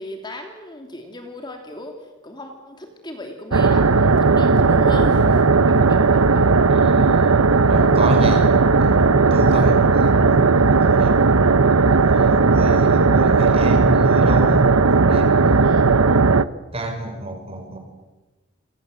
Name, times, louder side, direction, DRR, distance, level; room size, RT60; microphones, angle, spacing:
voice 1, 0.0-2.0 2.2-5.4 5.7-6.5 15.6-15.8, left 1 dB, 20° left, 4 dB, 2.9 m, -35 dB
sound 1, 3.5-16.4, right 4 dB, 85° right, 0.9 m, -16 dB
voice 2, 6.7-8.5 8.8-11.2 11.9-15.6 16.7-17.8, right 1 dB, 25° right, 4 dB, 5.8 m, -28 dB
28.5 x 26.5 x 8.0 m, 1.1 s
head